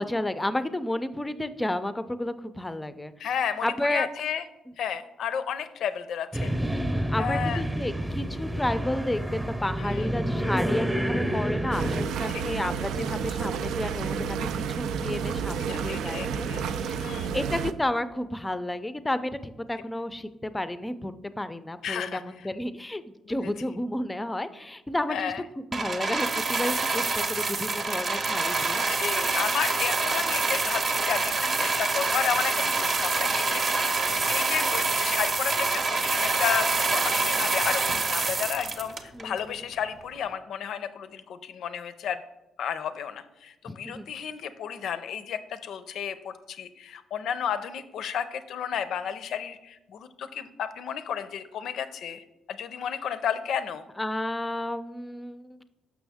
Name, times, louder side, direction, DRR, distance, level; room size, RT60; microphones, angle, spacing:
voice 1, 0.0-3.1 3.6-4.1 7.1-23.0 23.3-28.8 34.4-34.7 39.1-39.6 43.7-44.1 54.0-55.6, left 1 dB, 15° left, 12 dB, 0.4 m, -32 dB
voice 2, 3.2-4.4 4.8-6.5 7.2-7.6 9.8-10.1 12.3-12.4 15.7-16.6 17.0-17.4 21.8-22.5 23.3-23.4 25.1-25.4 28.9-34.0 34.3-42.2 42.6-53.8, left 8 dB, 70° left, 12 dB, 0.5 m, -32 dB
sound 1, 6.3-12.0, right 1 dB, 15° right, 0.8 m, -28 dB
sound 2, 11.7-17.7, right 6 dB, 85° right, 0.3 m, -30 dB
sound 3, 25.7-39.4 40.2-40.3, right 3 dB, 45° right, 0.7 m, -26 dB
6.1 x 6.1 x 3.5 m, 0.98 s
cardioid pair, 90°, 0 cm